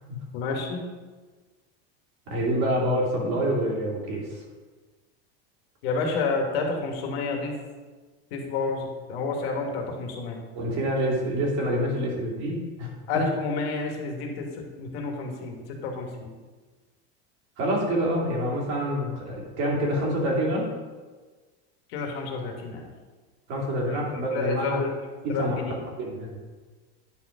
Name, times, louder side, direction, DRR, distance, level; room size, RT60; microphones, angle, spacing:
voice 1, 0.3-0.8 5.8-7.5 8.3-10.4 13.1-14.5 14.8-15.6 15.8-16.3 21.9-22.8 23.9-24.0 24.3-24.9 25.3-25.7, left 4 dB, 75° left, 1 dB, 1.8 m, -29 dB
voice 2, 2.3-4.4 10.5-13.2 17.6-20.7 23.5-24.8 25.2-25.6 26.0-26.4, equal, 50° right, -2 dB, 2.7 m, -27 dB
9.7 x 4.3 x 5.0 m, 1.3 s
supercardioid pair, 145°, 31 cm